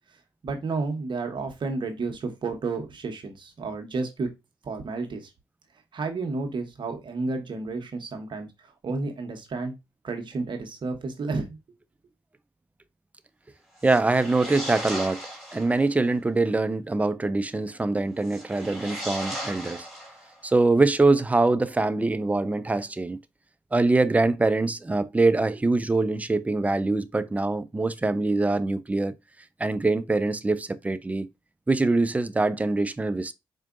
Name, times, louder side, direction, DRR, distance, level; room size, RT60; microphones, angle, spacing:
voice 1, 0.4-4.3 4.6-5.3 5.9-9.8 10.0-11.6, right 3 dB, 50° right, 1.0 m, -31 dB
sound 1, 13.8-15.8 18.2-20.5, equal, ahead, 1.7 m, -36 dB
voice 2, 13.8-15.2 15.5-19.9 20.4-23.2 23.7-29.1 29.6-31.3 31.7-33.3, right 2 dB, 15° right, 0.4 m, -23 dB
4.5 x 2.5 x 2.5 m
supercardioid pair, 60°, 10 cm